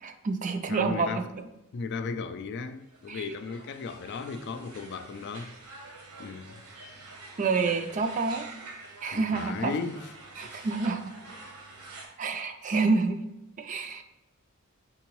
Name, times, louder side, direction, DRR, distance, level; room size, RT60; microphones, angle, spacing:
voice 1, 0.0-1.2 3.1-3.2 7.4-8.5 9.0-9.7 10.4-11.0 12.2-13.2 13.6-14.0, right 4 dB, 35° right, 0.3 m, -28 dB
voice 2, 0.7-1.2 1.7-5.5 6.2-6.6 9.1-10.1 10.4-10.7, left 5 dB, 50° left, 0.3 m, -36 dB
sound 1, 2.8-12.1, right 3 dB, 75° right, 1.0 m, -47 dB
4.4 x 3.9 x 3.0 m
head